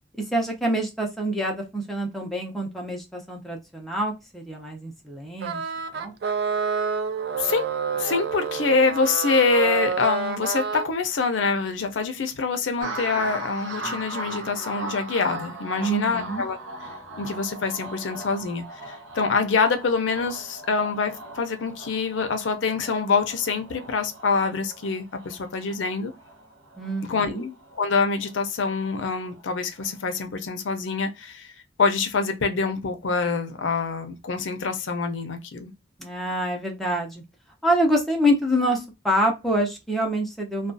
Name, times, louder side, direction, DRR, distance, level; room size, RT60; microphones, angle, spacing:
voice 1, 0.3-5.6 5.9-6.1 15.8-16.5 26.8-27.5 36.0-37.2 37.6-40.7, equal, ahead, 0.6 m, -26 dB
sound 1, 5.4-10.9, right 5 dB, 60° right, 0.3 m, -28 dB
voice 2, 7.4-16.6 17.2-26.1 27.1-27.5 27.8-31.5 31.8-35.7, left 4 dB, 85° left, 0.5 m, -25 dB
sound 2, 12.8-29.4 29.8-30.2, right 2 dB, 90° right, 0.8 m, -39 dB
2.4 x 2.2 x 2.5 m
head